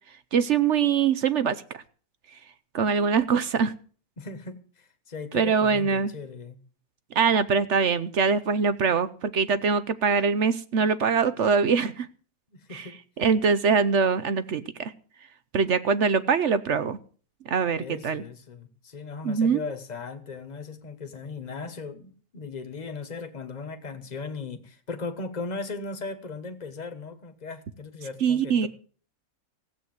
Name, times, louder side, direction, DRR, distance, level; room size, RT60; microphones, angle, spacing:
voice 1, 0.3-1.8 2.7-3.7 5.3-6.1 7.1-12.1 12.7-12.9 13.2-14.9 15.5-17.0 17.5-18.2 19.2-19.6 28.2-28.7, right 5 dB, 55° right, 14 dB, 1.0 m, -23 dB
voice 2, 4.2-6.6 12.5-13.0 17.8-28.7, left 4 dB, 30° left, 9 dB, 1.4 m, -38 dB
15.5 x 8.2 x 7.9 m, 0.42 s
omnidirectional pair, 1.6 m